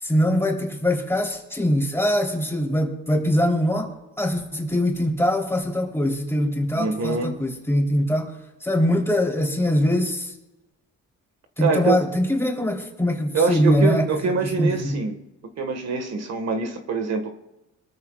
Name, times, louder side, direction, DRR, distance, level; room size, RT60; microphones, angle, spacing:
voice 1, 0.0-8.3 8.6-10.3 11.6-14.1 14.4-15.0, equal, 10° left, 0 dB, 3.5 m, -22 dB
voice 2, 6.8-7.4 11.6-12.0 13.3-15.1 15.6-17.3, right 4 dB, 60° right, 6 dB, 1.7 m, -24 dB
24.0 x 14.0 x 2.4 m, 0.97 s
cardioid pair, 90°, 30 cm